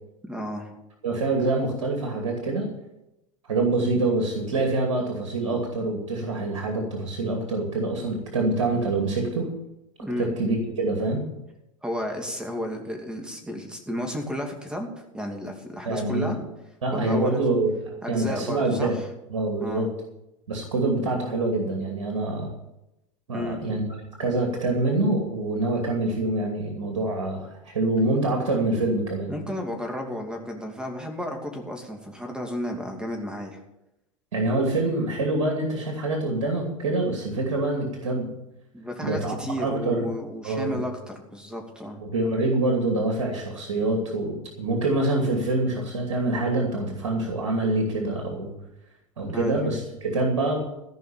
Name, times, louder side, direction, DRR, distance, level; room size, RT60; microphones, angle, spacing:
voice 1, 0.2-0.7 10.0-10.3 11.8-14.9 15.1-16.4 16.9-17.4 18.0-19.1 19.6-19.9 23.3-23.6 29.3-33.6 38.7-42.0 49.2-49.6, equal, 5° right, 3 dB, 2.7 m, -32 dB
voice 2, 1.0-2.7 3.5-9.5 10.2-11.2 15.9-16.4 16.8-18.9 19.3-19.9 20.5-22.5 23.3-23.8 24.2-29.3 34.3-38.3 39.0-40.1 40.4-40.8 42.0-48.5 49.2-50.6, right 2 dB, 90° right, 1 dB, 2.5 m, -25 dB
15.0 x 5.6 x 9.0 m, 0.89 s
hypercardioid pair, 105°, 17 cm